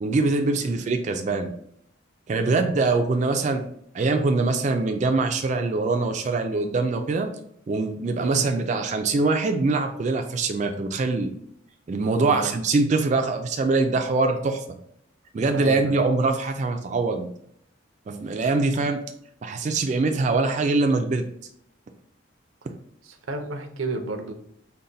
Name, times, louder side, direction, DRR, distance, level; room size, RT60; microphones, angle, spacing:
voice 1, 0.0-1.5 2.3-3.6 3.9-7.3 7.7-11.3 11.9-14.6 15.3-17.3 18.1-19.0 19.4-21.2, right 3 dB, 35° right, 5 dB, 0.3 m, -23 dB
voice 2, 12.2-12.6 15.5-16.1 23.0-24.3, right 2 dB, 85° right, 7 dB, 0.6 m, -32 dB
4.0 x 2.1 x 3.8 m, 0.69 s
head